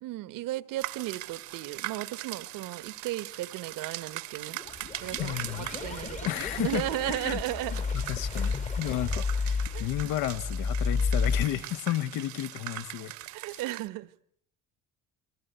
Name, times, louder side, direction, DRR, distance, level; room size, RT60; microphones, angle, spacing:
voice 1, 0.0-4.6 5.0-7.8 9.7-9.9 13.3-14.1, right 15 dB, 80° right, 1.3 m, -35 dB
sound 1, 0.8-13.9, right 15 dB, 60° right, 1.0 m, -41 dB
sound 2, 4.6-11.4, left 5 dB, 20° left, 1.0 m, -31 dB
voice 2, 5.2-5.7 6.2-7.4 7.9-13.1 13.5-13.6, left 13 dB, 85° left, 1.2 m, -32 dB
29.5 x 22.5 x 8.1 m
cardioid pair, 170°, 32 cm